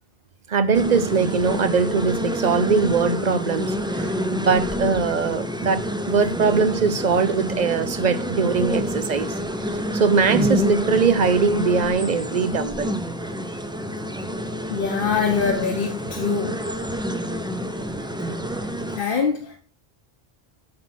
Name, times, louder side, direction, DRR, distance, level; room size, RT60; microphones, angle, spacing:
voice 1, 0.5-9.3 9.7-13.0 18.7-18.8, right 5 dB, 50° right, 0.7 m, -21 dB
sound 1, 0.7-19.0, equal, 5° right, 0.5 m, -28 dB
voice 2, 14.7-16.6 18.9-19.6, left 5 dB, 60° left, 1.2 m, -23 dB
7.6 x 6.0 x 4.2 m
omnidirectional pair, 1.0 m